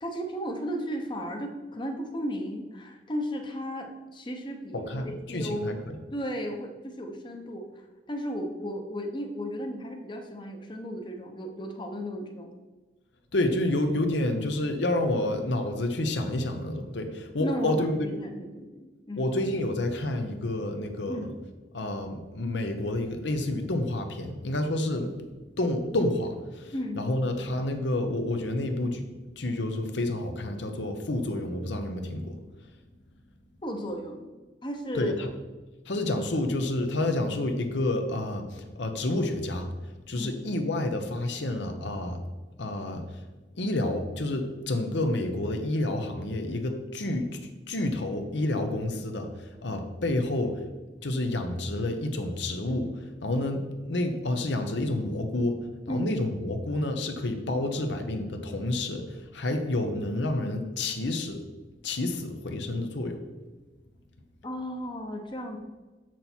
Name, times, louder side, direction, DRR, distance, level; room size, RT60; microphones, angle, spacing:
voice 1, 0.0-5.8 6.1-12.5 17.4-19.3 21.1-21.4 26.7-27.1 33.6-34.3 34.6-35.1 40.1-40.3 55.9-56.2 64.4-65.6, equal, 25° left, 3 dB, 0.8 m, -35 dB
voice 2, 4.7-5.7 13.3-18.1 19.2-21.3 21.7-25.1 25.6-29.0 29.4-32.4 34.9-35.3 35.9-39.7 40.1-42.2 42.6-43.0 43.6-47.4 47.7-50.5 51.0-55.6 55.9-61.4 61.8-63.2, left 1 dB, 80° left, 6 dB, 0.9 m, -29 dB
7.0 x 6.1 x 4.4 m, 1.2 s
head